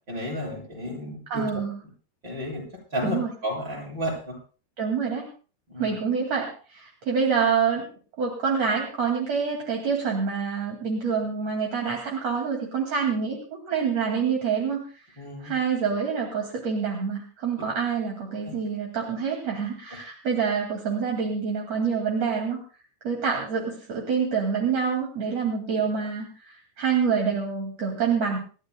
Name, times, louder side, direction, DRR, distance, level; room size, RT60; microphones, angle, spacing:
voice 1, 0.1-1.4 2.2-2.6 2.9-4.4 5.7-6.0 15.2-15.5 17.6-17.7 18.5-18.6, equal, 25° right, -2 dB, 7.7 m, -32 dB
voice 2, 1.3-1.8 3.0-3.3 4.8-5.3 5.8-7.8 8.2-15.0 15.4-22.6 23.0-28.4, right 6 dB, 40° right, 0 dB, 3.1 m, -26 dB
28.5 x 14.0 x 2.3 m, 0.38 s
omnidirectional pair, 5.1 m